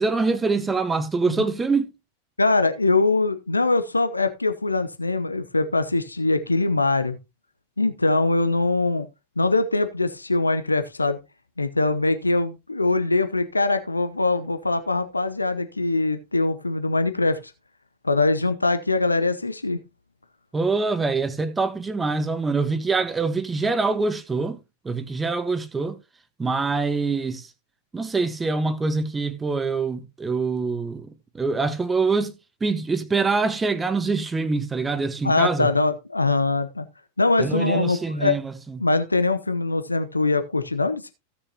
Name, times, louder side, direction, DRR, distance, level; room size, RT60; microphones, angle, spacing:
voice 1, 0.0-1.9 20.5-24.6 24.8-26.0 26.4-27.5 27.9-32.3 32.6-35.7 37.4-38.8, right 4 dB, 15° right, 1.2 m, -24 dB
voice 2, 2.4-7.2 7.8-9.1 9.4-11.2 11.6-17.4 18.0-19.8 35.2-36.9 37.2-38.4 38.8-41.1, left 3 dB, 80° left, 0.8 m, -22 dB
16.0 x 6.7 x 2.8 m
figure-of-eight pair, 90°, 0 cm